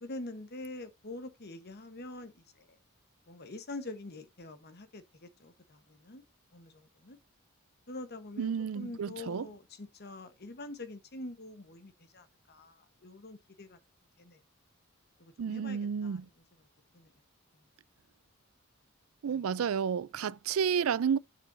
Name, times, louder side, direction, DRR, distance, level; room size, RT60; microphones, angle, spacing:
voice 1, 0.0-2.7 3.3-6.2 6.5-7.2 7.9-13.8 14.2-14.4 15.2-16.2 16.9-17.1 19.3-19.4, left 2 dB, 50° left, 1.2 m, -45 dB
voice 2, 8.4-9.5 15.4-16.3 19.2-21.2, right 7 dB, 80° right, 0.4 m, -31 dB
8.2 x 7.0 x 2.6 m
head